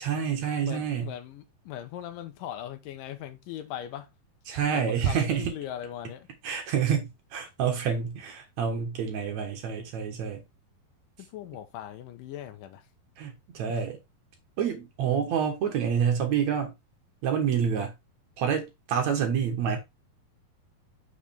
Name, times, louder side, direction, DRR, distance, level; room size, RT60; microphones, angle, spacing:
voice 1, 0.0-1.1 4.5-5.5 6.4-10.4 13.2-14.0 14.6-16.8 17.2-17.9 18.4-19.8, right 7 dB, 60° right, 2.2 m, -28 dB
voice 2, 0.6-4.1 4.7-6.3 11.2-12.8 13.7-13.8, left 11 dB, 75° left, 2.3 m, -39 dB
6.3 x 4.9 x 3.4 m
omnidirectional pair, 4.4 m